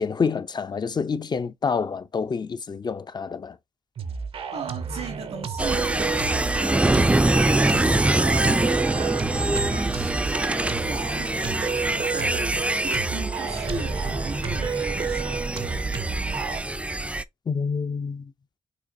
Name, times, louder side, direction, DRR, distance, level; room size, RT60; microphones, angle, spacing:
voice 1, 0.0-3.6 17.5-18.3, left 5 dB, 45° left, 0.5 m, -27 dB
sound 1, 4.0-16.6, right 6 dB, 65° right, 0.8 m, -32 dB
voice 2, 4.5-11.6 11.9-15.8, right 4 dB, 85° right, 2.0 m, -39 dB
sound 2, 5.6-17.2, right 2 dB, 10° right, 0.4 m, -24 dB
6.1 x 2.9 x 2.6 m
supercardioid pair, 55°, 10 cm